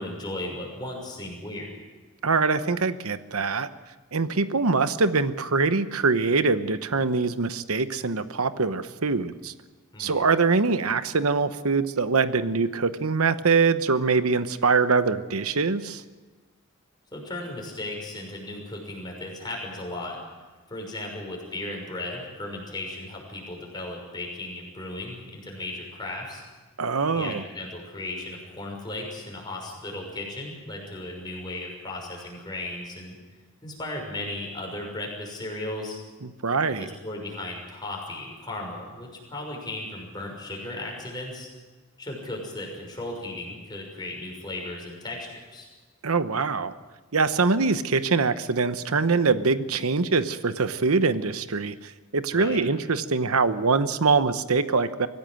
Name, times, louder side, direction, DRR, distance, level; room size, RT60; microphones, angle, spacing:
voice 1, 0.0-1.7 9.9-10.2 17.1-20.2 20.7-26.4 27.1-33.2 33.6-36.0 36.7-41.5 42.0-45.7 52.3-52.6, left 2 dB, 20° left, 0 dB, 6.2 m, -36 dB
voice 2, 2.2-3.7 4.1-9.5 10.0-16.0 26.8-27.4 36.2-36.9 46.0-46.7 47.1-55.1, right 4 dB, 90° right, 11 dB, 1.0 m, -23 dB
24.5 x 16.0 x 7.7 m, 1.3 s
head